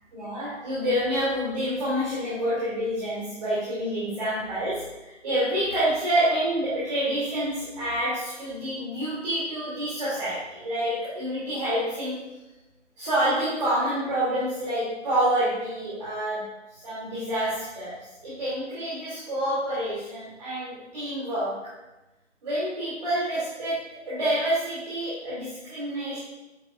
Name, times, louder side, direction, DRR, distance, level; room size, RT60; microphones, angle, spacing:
voice 1, 0.1-12.2 13.0-16.4 16.8-18.0 18.2-21.6 22.4-26.2, right 1 dB, 30° right, -10 dB, 2.7 m, -28 dB
10.0 x 8.1 x 2.5 m, 1.0 s
figure-of-eight pair, 150°, 38 cm